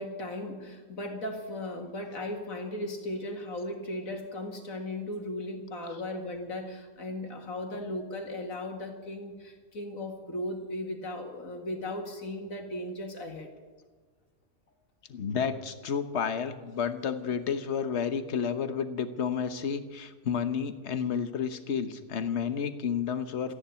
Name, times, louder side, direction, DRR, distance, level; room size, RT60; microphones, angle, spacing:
voice 1, 0.0-13.5, left 1 dB, 70° left, 3 dB, 2.5 m, -37 dB
voice 2, 15.1-23.5, left 7 dB, 55° left, 10 dB, 1.3 m, -31 dB
14.0 x 10.0 x 9.4 m, 1.4 s
omnidirectional pair, 1.5 m